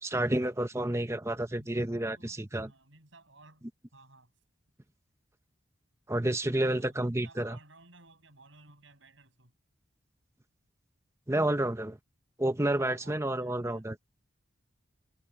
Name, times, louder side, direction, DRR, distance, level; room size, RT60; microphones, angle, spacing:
voice 1, 0.0-2.7 6.1-7.6 11.3-12.0 12.4-14.0, right 1 dB, 15° right, 0.9 m, -30 dB
voice 2, 1.5-4.3 6.4-9.5 12.8-13.9, right 2 dB, 70° right, 7.1 m, -57 dB
head